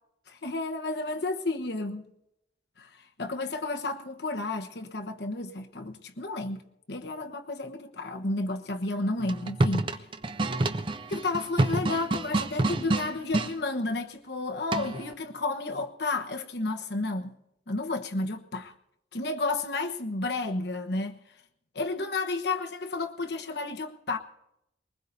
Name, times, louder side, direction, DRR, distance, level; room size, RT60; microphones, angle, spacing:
voice 1, 0.3-2.1 2.8-2.9 3.2-10.0 11.1-17.3 17.7-18.7 19.1-21.2 21.7-24.2, left 2 dB, 65° left, 1.1 m, -32 dB
sound 1, 9.2-13.5 14.7-15.1, right 2 dB, 25° right, 0.5 m, -28 dB
22.5 x 20.0 x 2.7 m
head